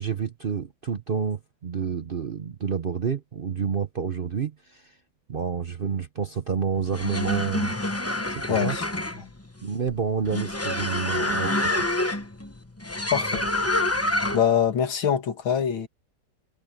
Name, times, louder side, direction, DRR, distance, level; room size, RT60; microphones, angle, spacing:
voice 1, 0.0-4.9 5.3-7.7 8.3-8.8 9.6-11.9, right 6 dB, 60° right, 0.5 m, -29 dB
sound 1, 6.8-14.6, left 1 dB, 10° left, 0.7 m, -27 dB
voice 2, 8.5-8.9 9.2-9.3 13.1-13.4 14.3-15.9, left 8 dB, 85° left, 2.6 m, -24 dB
omnidirectional pair, 2.1 m